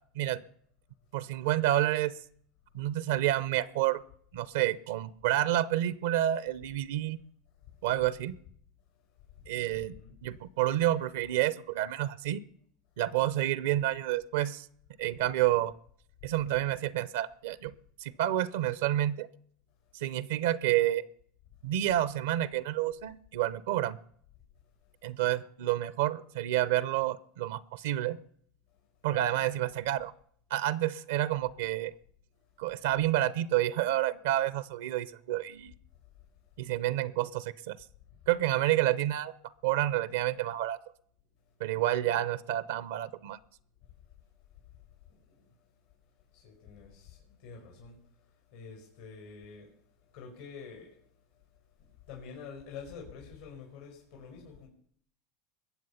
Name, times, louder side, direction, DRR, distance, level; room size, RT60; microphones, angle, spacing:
voice 1, 1.1-2.1 2.7-4.0 4.3-7.2 7.8-8.4 9.5-9.9 10.2-12.4 13.0-14.7 15.0-15.7 16.2-17.7 18.0-19.3 20.0-21.0 21.6-24.0 25.0-28.2 29.0-30.1 30.5-31.9 32.6-35.7 36.6-37.8 38.3-39.3 39.6-40.8 41.6-43.4, right 13 dB, 75° right, 0.6 m, -29 dB
voice 2, 9.3-10.1 24.8-24.9 28.7-28.8 45.1-45.7 46.3-51.0 51.3-51.4 51.8-54.7, left 6 dB, 85° left, 4.8 m, -48 dB
21.5 x 7.5 x 5.7 m
hypercardioid pair, 90°, 0 cm